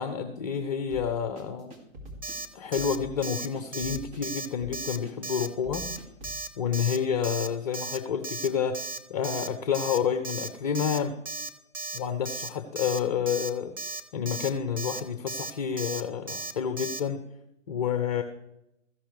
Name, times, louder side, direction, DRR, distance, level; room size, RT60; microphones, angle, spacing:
voice 1, 0.0-1.7 2.5-5.9 6.6-11.2 11.9-13.7 14.1-17.2 17.7-18.2, left 7 dB, 30° left, 9 dB, 0.7 m, -29 dB
sound 1, 0.9-6.4, right 1 dB, 35° right, 2.7 m, -45 dB
Alarm, 2.2-2.5 2.7-3.0 3.2-3.5 3.7-4.0 4.2-4.5 4.7-5.0 5.2-5.5 5.7-6.0 6.2-6.5 6.7-7.0 7.2-7.5 7.7-8.0 8.2-8.5 8.7-9.0 9.2-9.5 9.7-10.0 10.2-10.5 10.7-11.0 11.2-11.5 11.7-12.0 12.2-12.5 12.7-13.0 13.3-13.5 13.8-14.0 14.3-14.5 14.8-15.0 15.3-15.5 15.8-16.0 16.3-16.5 16.8-17.0, right 3 dB, 20° right, 0.5 m, -35 dB
14.0 x 11.5 x 3.3 m, 0.84 s
figure-of-eight pair, 135°, 39 cm